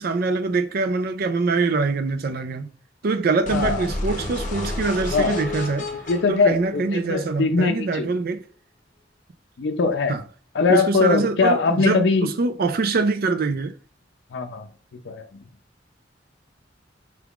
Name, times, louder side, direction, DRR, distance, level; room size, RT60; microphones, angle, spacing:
voice 1, 0.0-2.7 3.0-5.9 6.3-8.4 10.1-10.2 10.7-13.7, right 3 dB, 55° right, 0.4 m, -24 dB
sound 1, 3.4-7.4, left 2 dB, 45° left, 0.8 m, -31 dB
voice 2, 3.5-3.9 5.1-5.4 6.1-8.2 9.6-10.1 10.5-12.3 14.3-14.7 15.1-15.3, left 4 dB, 70° left, 0.5 m, -21 dB
4.6 x 3.5 x 2.4 m
head